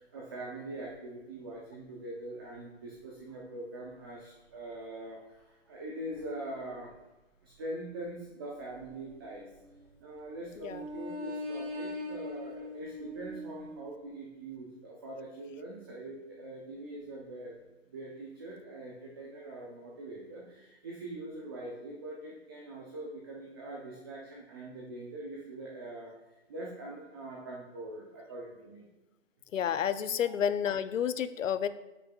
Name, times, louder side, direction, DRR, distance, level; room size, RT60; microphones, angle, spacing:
voice 1, 0.0-6.9 7.4-9.5 10.0-26.1 26.5-28.9, right 1 dB, 20° right, -3 dB, 0.5 m, -43 dB
sound 1, 8.5-10.2 10.6-13.7, left 1 dB, 55° right, 2.3 m, -41 dB
voice 2, 29.5-31.7, left 8 dB, 85° left, 13 dB, 0.6 m, -30 dB
9.2 x 6.8 x 2.2 m, 1.0 s
hypercardioid pair, 160°, 38 cm